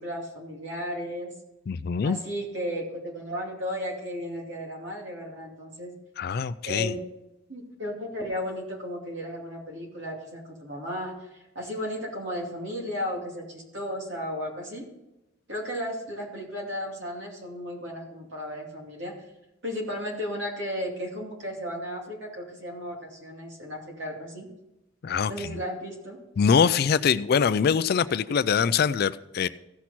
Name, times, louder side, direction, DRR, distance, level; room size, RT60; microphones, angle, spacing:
voice 1, 0.0-1.3 2.0-5.9 6.6-7.0 7.5-14.9 15.5-19.1 19.6-24.5 25.3-26.2, equal, 65° right, -1 dB, 2.5 m, -34 dB
voice 2, 1.7-2.2 6.2-6.9 25.0-25.6 26.4-29.5, left 6 dB, 50° left, 15 dB, 0.3 m, -23 dB
15.5 x 6.1 x 4.3 m, 0.94 s
head